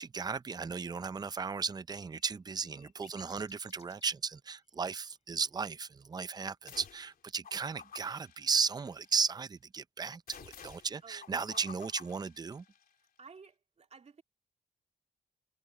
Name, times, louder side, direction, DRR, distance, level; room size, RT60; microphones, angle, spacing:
voice 1, 0.0-12.6, right 5 dB, 25° right, 0.5 m, -35 dB
sound 1, 1.9-4.2 7.0-7.1, left 7 dB, 45° left, 2.7 m, -60 dB
sound 2, 6.7-7.1 7.4-9.2 10.3-12.9, left 7 dB, 75° left, 3.6 m, -52 dB
voice 2, 11.0-11.8 13.2-14.2, right 5 dB, 45° right, 2.7 m, -55 dB
wide cardioid pair, 115°, 16 cm